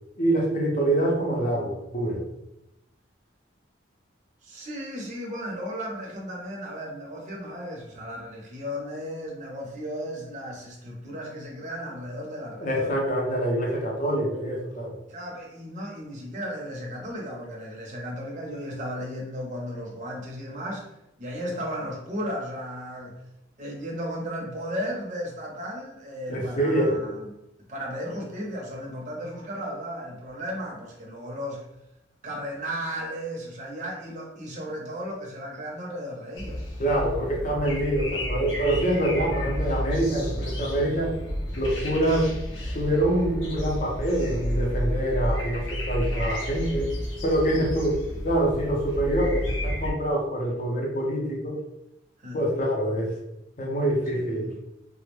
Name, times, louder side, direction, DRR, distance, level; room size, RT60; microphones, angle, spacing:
voice 1, 0.2-2.2 12.6-14.9 26.3-27.0 36.8-41.1 41.6-42.3 42.7-46.9 47.2-51.6 52.3-53.2 53.6-54.5, right 1 dB, 40° left, -2 dB, 0.5 m, -25 dB
voice 2, 4.4-13.0 15.1-20.9 21.2-23.2 23.6-27.3 27.7-31.6 32.2-36.6 40.1-40.4 47.5-47.8 52.2-52.4 54.1-54.5, equal, 40° right, -2 dB, 0.6 m, -35 dB
sound 1, 36.4-49.9, equal, 75° left, 0.7 m, -31 dB
2.2 x 2.0 x 3.0 m, 0.87 s
head